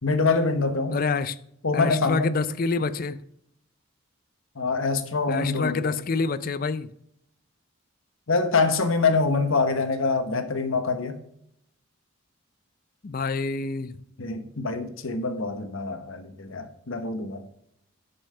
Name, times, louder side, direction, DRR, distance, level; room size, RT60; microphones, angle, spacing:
voice 1, 0.0-1.0 1.6-2.4 4.6-6.0 8.3-11.2 14.2-17.4, left 4 dB, 70° left, 1.1 m, -25 dB
voice 2, 0.9-1.4 1.7-3.2 5.3-6.9 13.0-14.0, left 4 dB, 40° left, 0.4 m, -27 dB
10.0 x 5.6 x 5.5 m
head